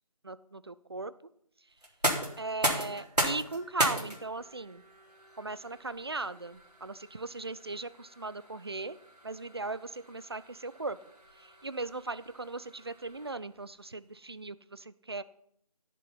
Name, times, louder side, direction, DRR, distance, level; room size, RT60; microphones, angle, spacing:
voice 1, 0.2-1.1 2.4-4.8 5.4-9.0 9.2-11.0 11.4-15.2, right 3 dB, 40° right, 17 dB, 0.5 m, -38 dB
sound 1, 1.8-13.6, right 1 dB, 85° right, 3.8 m, -37 dB
16.0 x 6.9 x 5.9 m, 0.72 s
figure-of-eight pair, 165°, 20 cm